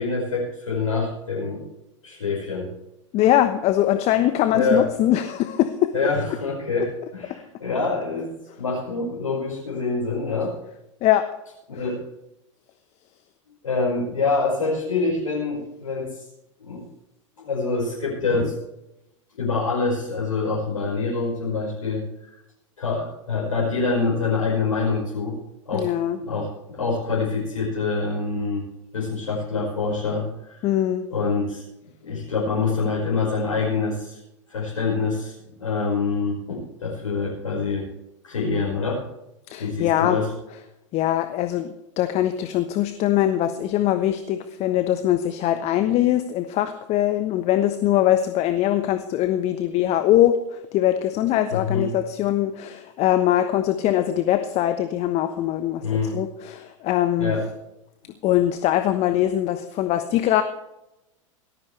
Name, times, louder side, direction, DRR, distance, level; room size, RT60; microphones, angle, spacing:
voice 1, 0.0-1.7 2.0-2.7 4.5-4.9 5.9-10.5 11.7-12.0 13.6-16.2 16.6-16.9 17.4-18.5 19.4-22.3 22.8-25.4 25.7-25.9 26.2-28.6 28.9-30.7 31.1-31.6 32.0-34.2 34.5-37.9 38.2-39.0 39.6-40.3 51.5-51.9 55.8-56.2 57.2-57.5, left 4 dB, 80° left, -5 dB, 5.4 m, -25 dB
voice 2, 3.1-5.9 11.0-11.3 25.7-26.2 30.6-31.1 39.5-40.2 40.9-55.8 56.1-57.3 58.2-60.4, left 12 dB, 40° left, 9 dB, 1.1 m, -22 dB
18.0 x 14.0 x 3.4 m, 0.87 s
hypercardioid pair, 95°, 17 cm